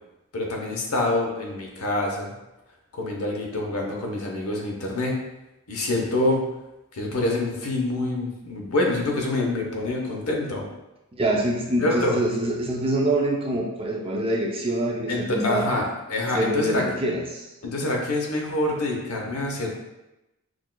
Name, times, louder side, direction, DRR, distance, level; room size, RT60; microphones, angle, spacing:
voice 1, 0.3-2.3 2.9-5.2 5.7-6.4 6.9-10.7 11.8-12.2 15.1-16.8 17.6-19.7, left 2 dB, 80° left, 0 dB, 0.8 m, -26 dB
voice 2, 11.1-15.7 16.3-17.5, right 1 dB, 25° right, -1 dB, 0.5 m, -25 dB
6.2 x 2.4 x 2.2 m, 0.96 s
head